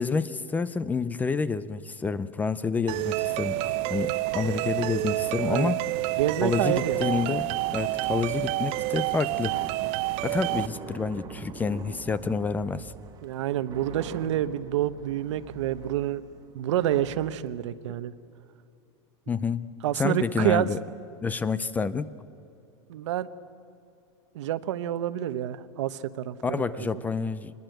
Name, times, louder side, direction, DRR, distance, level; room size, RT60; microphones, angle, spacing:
voice 1, 0.0-5.8 6.4-9.5 10.2-12.9 19.3-19.7 20.0-20.8 21.2-22.1 26.4-27.5, left 5 dB, 10° left, 16 dB, 0.5 m, -28 dB
sound 1, 2.9-10.7, right 17 dB, 40° right, 0.7 m, -29 dB
sound 2, 3.5-12.1, left 2 dB, 75° left, 6.9 m, -58 dB
voice 2, 6.2-7.1 13.2-16.2 16.5-18.1 19.8-20.7 22.9-23.3 24.3-27.0, right 12 dB, 80° right, 13 dB, 1.0 m, -28 dB
sound 3, 6.8-17.5, right 6 dB, 25° right, 1.6 m, -45 dB
25.0 x 20.5 x 7.9 m, 2.5 s
supercardioid pair, 150°, 15 cm